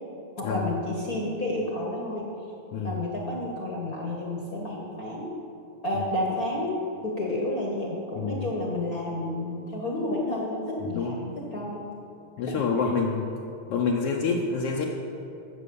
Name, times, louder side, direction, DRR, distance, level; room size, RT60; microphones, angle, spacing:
voice 1, 0.4-2.3 2.8-5.3 5.8-11.8 12.5-12.6, left 1 dB, 50° left, -2 dB, 1.1 m, -30 dB
voice 2, 10.8-11.2 12.4-13.4 13.7-14.9, left 4 dB, 80° left, -1 dB, 1.3 m, -27 dB
12.0 x 7.7 x 6.9 m, 2.7 s
omnidirectional pair, 3.6 m